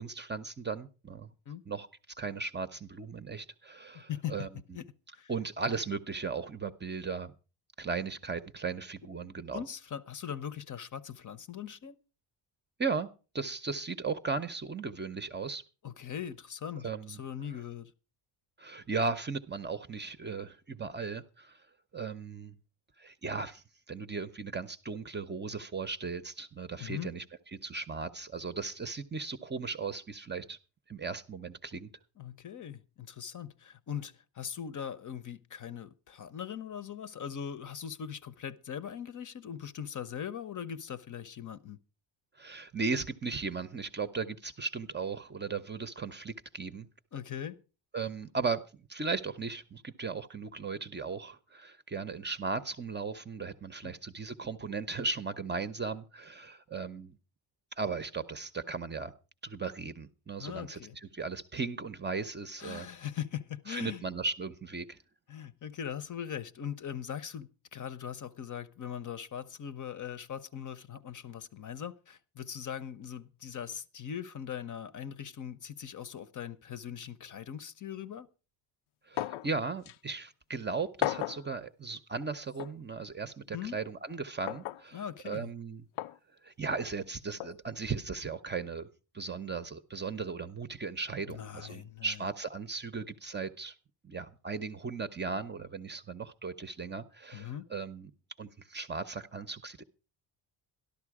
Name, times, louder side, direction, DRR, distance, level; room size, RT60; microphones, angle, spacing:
voice 1, 0.0-1.3 1.7-4.5 5.3-7.3 7.8-9.6 12.8-13.1 13.3-15.6 16.8-17.2 18.6-21.6 21.9-22.6 23.0-27.2 27.6-30.6 30.9-31.9 42.4-46.9 47.9-57.2 57.8-59.1 59.4-62.9 63.7-65.0 79.1-85.8 86.4-88.9 89.1-93.7 94.0-98.1 98.4-99.8, right 4 dB, 20° right, 0.7 m, -37 dB
voice 2, 3.9-4.5 4.7-4.9 5.1-5.3 9.5-12.0 15.8-17.9 26.8-27.1 32.2-41.8 47.1-47.6 53.8-54.0 60.4-61.0 62.6-64.0 65.3-78.3 83.5-83.8 84.9-85.5 91.3-92.2 97.3-97.7, left 9 dB, 40° left, 0.8 m, -40 dB
sound 1, 79.2-79.5 79.9-80.0 81.0-81.4 82.6-82.7 84.5-84.8 86.0-86.2 87.4-87.5, left 14 dB, 75° left, 0.7 m, -34 dB
13.0 x 12.0 x 4.8 m
cardioid pair, 125°, 49 cm